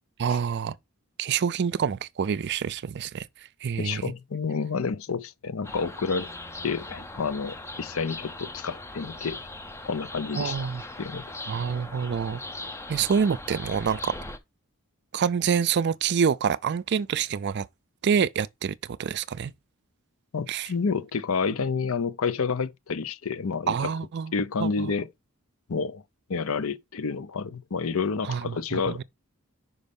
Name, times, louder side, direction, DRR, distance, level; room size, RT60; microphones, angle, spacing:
voice 1, 0.2-0.7 1.2-3.3 3.6-4.0 10.4-10.8 11.5-12.4 12.9-14.1 15.1-17.7 18.0-19.5 20.5-20.7 23.7-24.3 24.6-24.9 28.2-29.0, right 7 dB, 50° right, 0.4 m, -27 dB
voice 2, 3.8-6.3 6.6-9.4 9.9-10.6 11.0-11.3 20.3-23.9 24.3-25.1 25.7-26.0 26.3-29.0, left 5 dB, 65° left, 0.6 m, -29 dB
sound 1, 5.6-14.4, left 2 dB, 10° left, 0.5 m, -39 dB
5.3 x 5.3 x 5.3 m
head